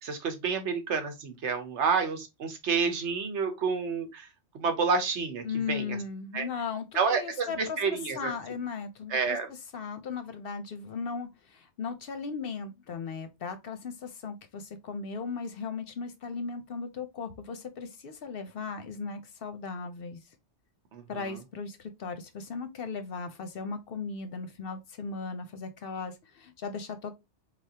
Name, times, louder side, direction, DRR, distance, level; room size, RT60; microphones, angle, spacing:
voice 1, 0.0-4.3 4.5-6.0 6.3-6.5 6.9-8.3 9.1-9.5 20.9-21.4, right 5 dB, 75° right, 1.2 m, -29 dB
voice 2, 5.4-7.8 8.2-9.4 9.7-20.2 21.1-27.1, left 5 dB, 60° left, 0.7 m, -37 dB
4.0 x 3.3 x 2.7 m
omnidirectional pair, 1.2 m